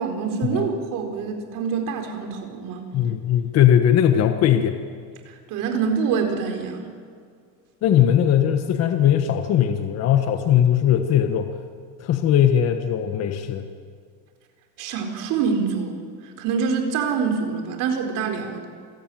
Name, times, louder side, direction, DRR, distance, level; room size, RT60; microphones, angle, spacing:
voice 1, 0.0-2.8 5.5-6.9 14.8-15.9 16.4-18.7, right 6 dB, 60° right, 4 dB, 4.3 m, -25 dB
voice 2, 2.9-4.8 7.8-11.5 12.0-13.6, left 10 dB, 45° left, 6 dB, 1.5 m, -19 dB
28.0 x 16.5 x 9.3 m, 2.1 s
cardioid pair, 150°, 35 cm